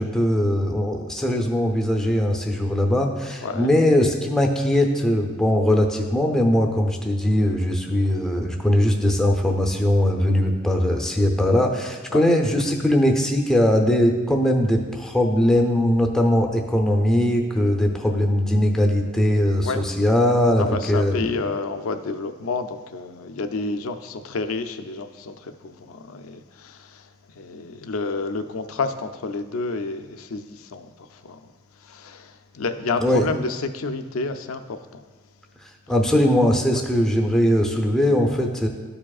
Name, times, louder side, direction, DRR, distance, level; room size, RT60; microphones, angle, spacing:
voice 1, 0.0-21.3 33.0-33.3 35.9-38.7, left 1 dB, 5° left, 1 dB, 0.6 m, -20 dB
voice 2, 3.4-3.7 12.1-12.3 19.6-19.8 20.6-35.0 36.7-36.8, left 3 dB, 75° left, 8 dB, 0.5 m, -30 dB
13.0 x 4.9 x 2.4 m, 1.4 s
head